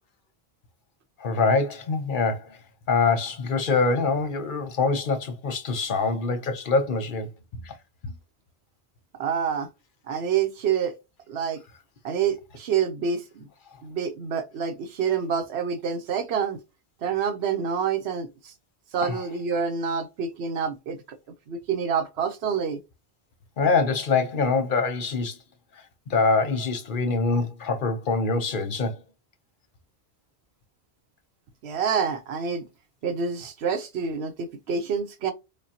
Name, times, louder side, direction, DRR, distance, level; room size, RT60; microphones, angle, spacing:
voice 1, 1.2-2.6 2.9-7.8 8.0-8.1 19.0-19.1 23.6-25.4 25.7-29.0, left 4 dB, 55° left, 0.8 m, -25 dB
voice 2, 9.2-9.7 10.1-10.9 11.3-11.6 12.0-13.5 13.8-16.6 17.0-18.5 18.9-21.0 21.5-22.8 31.6-32.7 33.0-35.3, right 7 dB, 80° right, 1.0 m, -27 dB
4.9 x 2.3 x 2.8 m
omnidirectional pair, 1.1 m